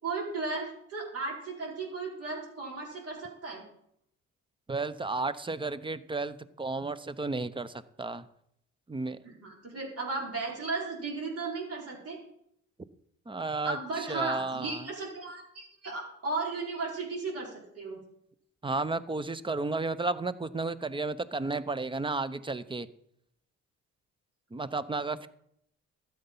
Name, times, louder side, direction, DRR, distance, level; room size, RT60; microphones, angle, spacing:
voice 1, 0.0-3.6 9.2-12.2 13.6-18.0, right 3 dB, 50° right, -2 dB, 4.8 m, -35 dB
voice 2, 4.7-8.2 8.9-9.2 13.3-13.8 14.1-14.8 18.6-22.9 24.5-25.3, right 3 dB, 15° right, 15 dB, 0.7 m, -33 dB
12.5 x 8.0 x 5.5 m, 0.73 s
cardioid pair, 90°, 30 cm